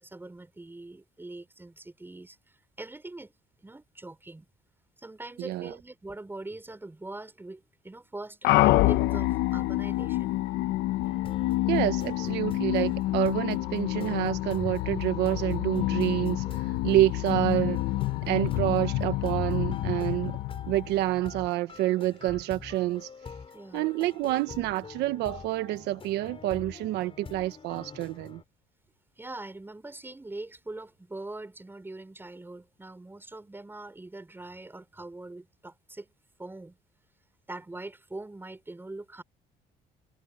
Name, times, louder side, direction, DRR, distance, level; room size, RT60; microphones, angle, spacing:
voice 1, 0.0-3.3 3.6-4.5 5.0-10.3 18.5-18.6 23.5-23.9 29.2-36.1 36.4-36.8 37.5-39.2, right 2 dB, 15° right, 6.0 m, -42 dB
voice 2, 5.4-5.7 11.7-16.4 16.8-17.8 18.2-20.4 20.7-23.1 23.7-28.4, right 16 dB, 85° right, 1.3 m, -28 dB
sound 1, 8.4-21.3, left 17 dB, 90° left, 0.9 m, -28 dB
sound 2, 11.0-28.4, left 5 dB, 35° left, 6.4 m, -44 dB
cardioid pair, 110°, 17 cm